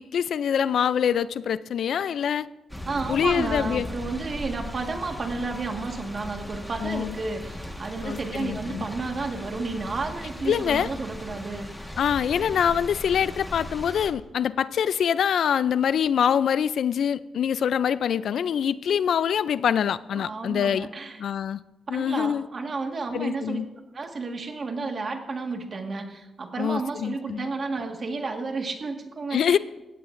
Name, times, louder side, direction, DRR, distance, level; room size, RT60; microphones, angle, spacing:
voice 1, 0.0-2.5 3.1-3.9 6.8-7.2 8.0-8.9 10.5-10.9 12.0-20.9 21.2-21.6 21.9-22.4 23.1-23.7 26.6-27.5 29.3-29.6, left 8 dB, 75° left, 16 dB, 0.4 m, -25 dB
sound 1, 2.7-14.1, left 1 dB, 5° left, 1.5 m, -38 dB
voice 2, 2.8-11.7 20.1-21.2 21.9-23.6 23.9-29.6, right 3 dB, 40° right, 3 dB, 1.7 m, -32 dB
18.5 x 16.0 x 2.6 m, 1.1 s
wide cardioid pair, 130°, 0 cm